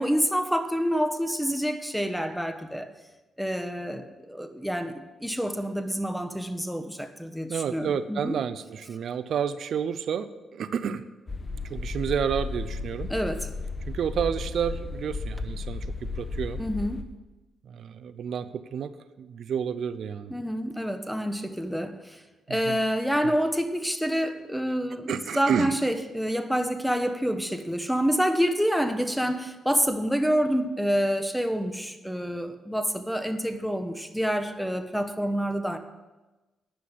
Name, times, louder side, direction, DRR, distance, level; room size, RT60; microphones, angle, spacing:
voice 1, 0.0-2.9 3.4-8.4 13.1-13.5 16.6-17.1 20.3-22.2 22.5-35.8, equal, ahead, 8 dB, 1.1 m, -27 dB
voice 2, 7.5-11.0 11.7-13.1 13.9-16.6 17.7-18.9 19.2-20.3 22.5-22.8 23.2-23.3 25.1-25.8, right 7 dB, 70° right, 13 dB, 0.6 m, -30 dB
sound 1, 11.3-17.0, left 3 dB, 40° left, 1.1 m, -34 dB
10.0 x 6.1 x 8.4 m, 1.1 s
supercardioid pair, 60°, 0 cm